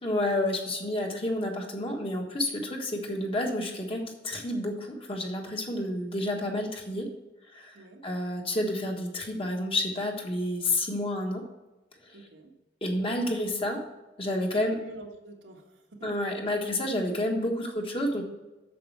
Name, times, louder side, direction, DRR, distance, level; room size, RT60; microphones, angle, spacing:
voice 1, 0.0-7.1 7.5-7.7 8.0-11.4 12.0-12.2 12.8-13.8 14.2-14.8 16.0-18.2, left 1 dB, 30° left, 1 dB, 1.4 m, -30 dB
voice 2, 7.7-8.1 12.1-12.5 14.5-16.3, right 2 dB, 85° right, 1 dB, 1.6 m, -48 dB
8.5 x 6.9 x 4.7 m, 1.1 s
head